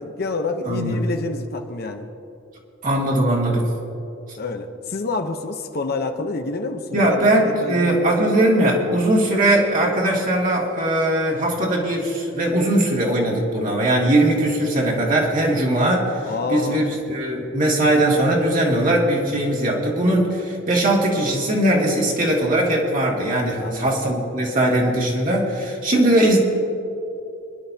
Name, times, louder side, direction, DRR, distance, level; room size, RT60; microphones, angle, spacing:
voice 1, 0.0-2.1 4.4-8.0 16.2-16.9 23.5-23.9, left 3 dB, 55° left, 6 dB, 0.8 m, -28 dB
voice 2, 0.7-1.0 2.8-3.7 6.9-26.4, right 1 dB, 45° right, -2 dB, 2.3 m, -20 dB
23.5 x 11.0 x 2.8 m, 2.8 s
head